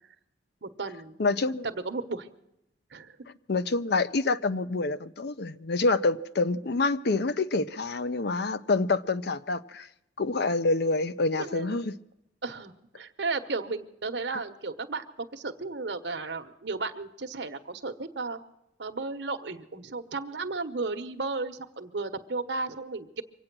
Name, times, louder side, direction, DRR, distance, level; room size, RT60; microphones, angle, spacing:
voice 1, 0.6-1.2 1.6-2.3 2.9-3.2 11.4-11.8 12.4-18.4 18.8-23.2, right 3 dB, 65° right, 1.0 m, -34 dB
voice 2, 1.2-1.7 3.5-9.9 10.2-12.0, left 3 dB, 60° left, 0.6 m, -27 dB
24.5 x 8.8 x 6.0 m
head